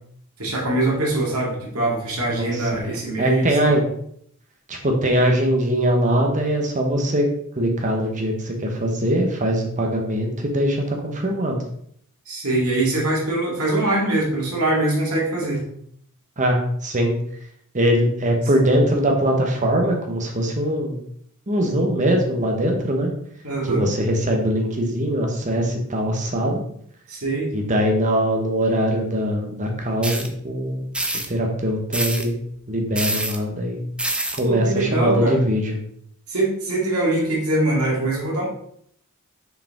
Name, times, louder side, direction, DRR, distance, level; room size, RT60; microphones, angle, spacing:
voice 1, 0.4-3.8 12.3-15.7 23.4-23.9 27.1-27.5 34.4-35.4 36.3-38.5, right 2 dB, 75° right, -3 dB, 2.2 m, -23 dB
voice 2, 2.4-2.9 3.2-3.8 4.7-7.3 7.6-11.6 16.4-17.1 17.7-21.0 21.5-23.1 23.6-26.6 27.5-30.8 31.3-32.4 32.7-33.8 34.3-35.7, equal, 35° right, 2 dB, 1.0 m, -21 dB
sound 1, 30.0-30.3 30.9-31.3 31.9-32.3 33.0-33.4 34.0-34.4, right 1 dB, 5° right, 0.5 m, -25 dB
5.8 x 4.8 x 3.6 m, 0.66 s
head